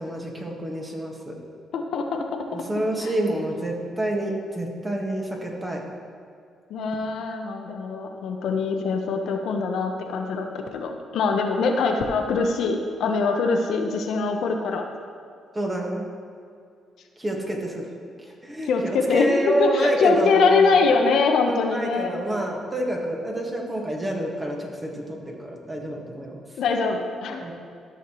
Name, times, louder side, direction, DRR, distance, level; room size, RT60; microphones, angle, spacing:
voice 1, 0.0-1.4 2.5-5.8 15.5-16.1 17.2-17.9 18.2-20.8 21.5-26.4 27.4-27.5, right 1 dB, 20° right, 0 dB, 1.6 m, -28 dB
voice 2, 1.7-2.2 3.0-3.1 6.7-14.9 18.7-22.1 26.6-27.5, left 4 dB, 75° left, 3 dB, 0.8 m, -23 dB
13.5 x 6.5 x 3.1 m, 2.3 s
cardioid pair, 90°, 0 cm